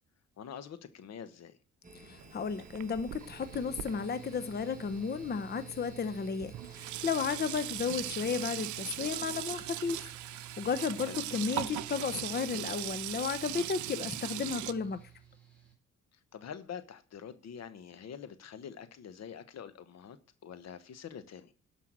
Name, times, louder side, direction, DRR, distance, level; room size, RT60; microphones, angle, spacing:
voice 1, 0.4-1.6 11.0-11.2 16.1-21.5, left 8 dB, 60° left, 1.1 m, -46 dB
sound 1, 1.8-8.6, right 2 dB, 25° right, 1.7 m, -54 dB
voice 2, 2.0-10.1 10.6-15.0, left 6 dB, 35° left, 0.8 m, -34 dB
Sink (filling or washing), 2.2-5.3 6.1-6.2 6.4-14.7, right 14 dB, 75° right, 0.7 m, -39 dB
Mechanical fan, 3.2-15.7, right 9 dB, 5° left, 4.0 m, -52 dB
12.0 x 5.9 x 6.1 m
cardioid pair, 90°, 30 cm